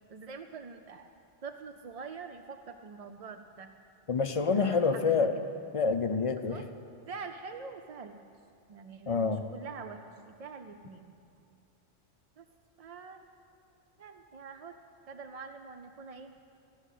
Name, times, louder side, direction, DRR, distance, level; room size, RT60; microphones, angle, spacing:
voice 1, 0.1-1.1 1.4-3.7 4.5-5.5 6.5-6.6 7.1-8.2 8.7-10.0 10.3-11.1 12.4-12.5 12.8-13.2 14.0-14.8 15.1-16.3, right 5 dB, 55° right, 6 dB, 0.4 m, -45 dB
voice 2, 4.1-5.3 5.7-6.7 9.1-9.4, left 5 dB, 40° left, 8 dB, 0.5 m, -27 dB
15.0 x 6.3 x 10.0 m, 2.4 s
omnidirectional pair, 1.2 m